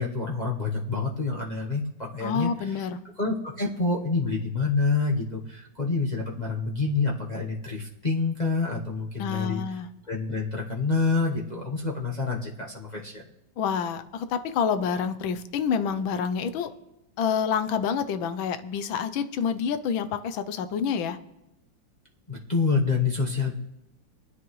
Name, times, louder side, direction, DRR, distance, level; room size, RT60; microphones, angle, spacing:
voice 1, 0.0-2.9 3.2-9.6 10.1-13.2 22.3-23.5, left 4 dB, 30° left, -3 dB, 1.0 m, -27 dB
voice 2, 2.2-3.0 9.2-9.9 13.6-16.7 17.2-21.2, left 7 dB, 85° left, 11 dB, 1.5 m, -28 dB
25.5 x 9.6 x 3.2 m, 0.88 s
omnidirectional pair, 2.1 m